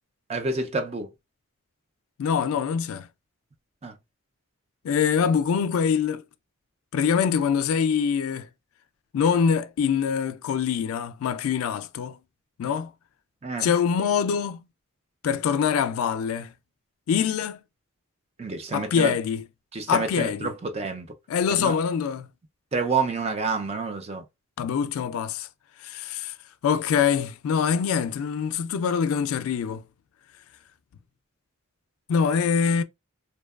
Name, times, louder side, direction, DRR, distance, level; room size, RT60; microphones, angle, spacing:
voice 1, 0.3-1.1 3.8-3.9 13.4-13.7 18.4-19.1 19.7-21.1 21.5-21.7 22.7-24.2, right 4 dB, 30° right, 0.4 m, -28 dB
voice 2, 2.2-3.1 4.8-6.2 6.9-8.5 9.1-12.1 12.6-12.9 13.6-14.6 15.2-16.5 17.1-17.6 18.7-19.4 19.9-20.5 21.3-22.3 24.6-25.5 25.8-26.3 26.6-29.8 32.1-32.8, left 7 dB, 80° left, 0.3 m, -24 dB
2.7 x 2.2 x 2.2 m
head